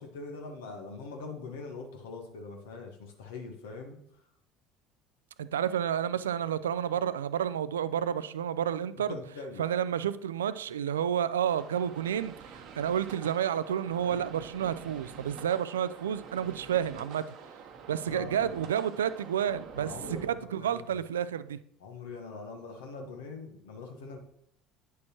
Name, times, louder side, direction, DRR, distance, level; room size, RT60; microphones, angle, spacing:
voice 1, 0.0-4.0 9.0-9.6 14.1-14.2 18.1-18.5 19.8-20.3 20.6-21.0 21.8-24.2, left 4 dB, 70° left, 1.1 m, -42 dB
voice 2, 5.4-9.2 9.6-17.2 17.9-21.6, right 9 dB, 80° right, 0.3 m, -30 dB
sound 1, 11.5-20.3, right 6 dB, 55° right, 0.8 m, -47 dB
9.4 x 6.4 x 3.0 m
figure-of-eight pair, 65°, 0 cm